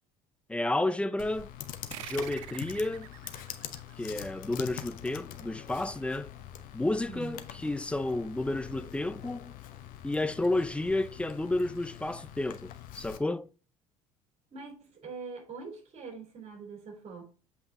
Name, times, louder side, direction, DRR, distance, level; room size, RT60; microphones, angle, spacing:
voice 1, 0.5-1.5 2.0-3.1 4.0-6.3 6.7-9.5 10.0-13.5, left 2 dB, 5° left, 0.5 m, -31 dB
Computer keyboard, 1.2-13.2, left 11 dB, 55° left, 0.9 m, -44 dB
sound 1, 1.9-4.9, right 14 dB, 65° right, 0.5 m, -46 dB
voice 2, 14.5-17.2, right 4 dB, 40° right, 3.8 m, -43 dB
7.8 x 5.7 x 3.0 m
figure-of-eight pair, 60°, 17 cm